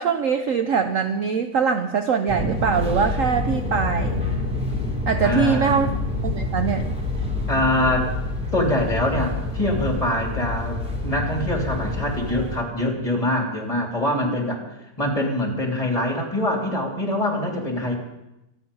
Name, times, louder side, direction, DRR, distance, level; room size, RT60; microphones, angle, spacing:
voice 1, 0.0-4.2 5.1-5.9 6.2-6.9 14.1-14.4, right 6 dB, 55° right, 7 dB, 1.0 m, -22 dB
Fixed-wing aircraft airplane, 2.3-12.6, left 2 dB, 5° right, 2.8 m, -27 dB
voice 2, 5.2-5.8 7.5-8.1 8.5-14.6 15.0-18.0, left 1 dB, 20° left, 1 dB, 3.3 m, -24 dB
25.5 x 9.6 x 5.5 m, 0.93 s
omnidirectional pair, 1.9 m